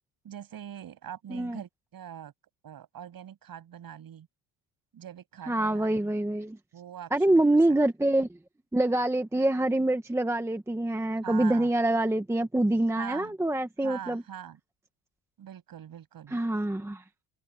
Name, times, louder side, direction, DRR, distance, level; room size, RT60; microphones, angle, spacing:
voice 1, 0.2-2.3 2.6-4.3 4.9-6.2 6.7-7.6 11.2-11.7 13.0-13.4 13.8-14.6 15.4-16.4, right 9 dB, 45° right, 6.6 m, -43 dB
voice 2, 5.5-6.6 7.1-8.3 8.7-14.2 16.3-17.0, right 1 dB, 5° right, 1.0 m, -25 dB
cardioid pair, 170°, 50 cm